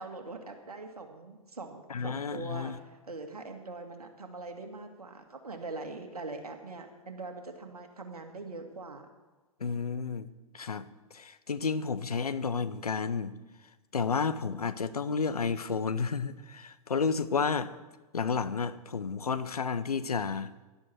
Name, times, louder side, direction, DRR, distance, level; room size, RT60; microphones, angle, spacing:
voice 1, 0.0-9.0, right 3 dB, 75° right, 5 dB, 2.2 m, -42 dB
voice 2, 1.9-2.8 9.6-10.9 11.1-13.3 13.9-17.7 18.1-20.5, left 5 dB, 75° left, 13 dB, 0.8 m, -31 dB
17.0 x 11.5 x 4.5 m, 1.2 s
figure-of-eight pair, 115°, 19 cm